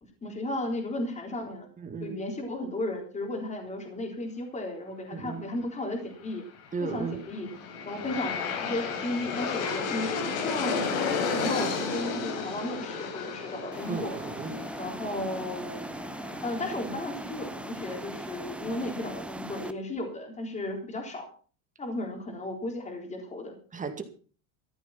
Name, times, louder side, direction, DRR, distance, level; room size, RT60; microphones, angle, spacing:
voice 1, 0.2-1.7 2.0-6.4 6.9-7.5 7.8-10.9 11.3-14.2 14.8-15.8 16.4-21.3 21.8-23.5, left 1 dB, 15° left, 3 dB, 3.8 m, -34 dB
voice 2, 1.8-2.2 5.1-5.4 6.7-7.2 13.9-14.6 23.7-24.0, right 5 dB, 20° right, 7 dB, 2.1 m, -35 dB
Aircraft, 7.0-18.1, left 5 dB, 65° left, 4.4 m, -33 dB
sound 1, 13.7-19.7, right 1 dB, 5° right, 0.7 m, -39 dB
14.5 x 11.0 x 5.9 m, 0.39 s
supercardioid pair, 140°, 42 cm